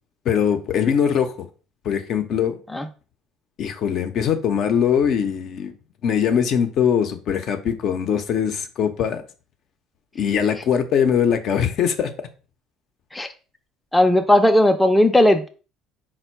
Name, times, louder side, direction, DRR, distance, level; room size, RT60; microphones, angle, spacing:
voice 1, 0.3-1.5 1.8-2.6 3.6-5.7 6.0-9.2 10.1-12.1, left 8 dB, 60° left, 0.6 m, -21 dB
voice 2, 13.9-15.5, left 1 dB, 5° left, 0.4 m, -16 dB
4.3 x 2.2 x 4.3 m
supercardioid pair, 100°, 0 cm